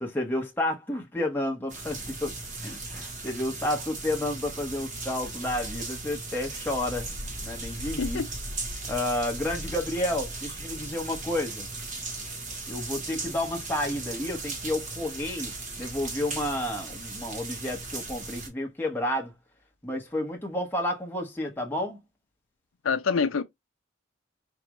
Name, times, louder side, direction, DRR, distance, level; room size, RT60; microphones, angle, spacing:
voice 1, 0.0-7.1 7.4-8.2 8.9-11.7 12.7-19.3 19.8-22.0, left 1 dB, 10° left, 1.0 m, -31 dB
sound 1, 1.7-18.5, right 2 dB, 40° right, 1.1 m, -37 dB
voice 2, 22.8-23.4, left 5 dB, 85° left, 0.6 m, -25 dB
4.7 x 2.5 x 3.0 m
head